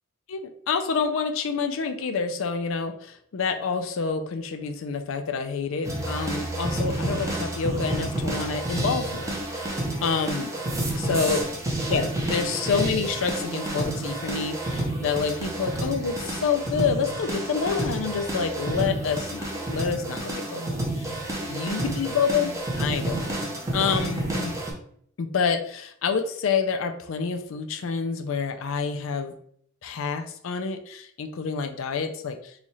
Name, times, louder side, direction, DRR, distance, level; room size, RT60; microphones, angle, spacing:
voice 1, 0.3-9.7 10.0-10.5 11.0-11.5 11.9-21.2 21.4-22.5 22.8-23.3 23.7-24.5 25.2-29.3 29.8-32.5, left 5 dB, 65° left, 7 dB, 0.4 m, -28 dB
sound 1, 5.8-24.7, right 1 dB, 15° right, 0.6 m, -30 dB
3.1 x 2.4 x 4.1 m, 0.64 s
head